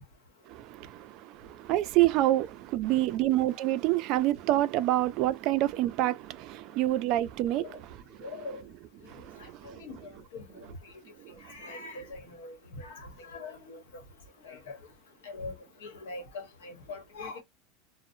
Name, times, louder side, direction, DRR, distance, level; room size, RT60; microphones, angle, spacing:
voice 1, 0.5-7.8 9.1-9.8, right 15 dB, 50° right, 0.3 m, -27 dB
voice 2, 8.2-8.6 9.0-9.1 9.4-9.5 9.8-10.9 11.5-13.8 14.4-14.8 15.2-15.5 15.8-17.4, left 3 dB, 85° left, 1.0 m, -42 dB
2.6 x 2.0 x 2.5 m
supercardioid pair, 140°, 0 cm